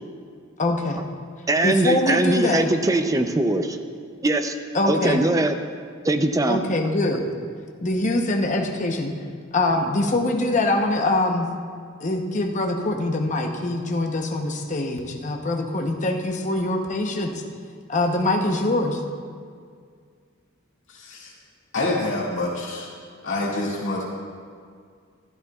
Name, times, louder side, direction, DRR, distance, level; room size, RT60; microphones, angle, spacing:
voice 1, 0.6-1.0 1.6-2.7 4.7-5.2 6.5-7.3 7.8-9.1 9.5-11.5 12.0-17.4 17.9-19.0, left 2 dB, 35° left, 2 dB, 0.9 m, -23 dB
voice 2, 1.5-3.8 4.2-4.6 4.9-5.6 6.0-6.6, right 2 dB, 15° right, 7 dB, 0.5 m, -21 dB
voice 3, 20.9-21.3 21.7-22.9 23.2-24.0, left 2 dB, 65° left, -6 dB, 2.2 m, -26 dB
14.5 x 12.5 x 2.4 m, 2.1 s
head